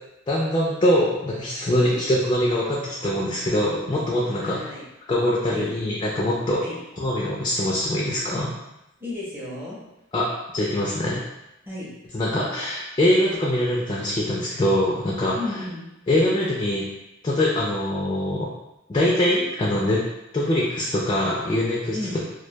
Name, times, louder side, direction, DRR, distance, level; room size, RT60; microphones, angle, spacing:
voice 1, 0.3-4.6 5.1-6.6 7.0-8.5 10.1-11.2 12.1-15.4 16.1-16.9 17.2-18.5 18.9-20.0 20.3-22.0, left 1 dB, 25° left, -5 dB, 0.3 m, -23 dB
voice 2, 4.3-4.8 5.5-5.7 6.6-6.8 9.0-9.8 11.6-11.9 15.3-15.8 21.9-22.2, left 2 dB, 10° right, -7 dB, 0.6 m, -33 dB
2.2 x 2.2 x 2.7 m, 0.90 s
head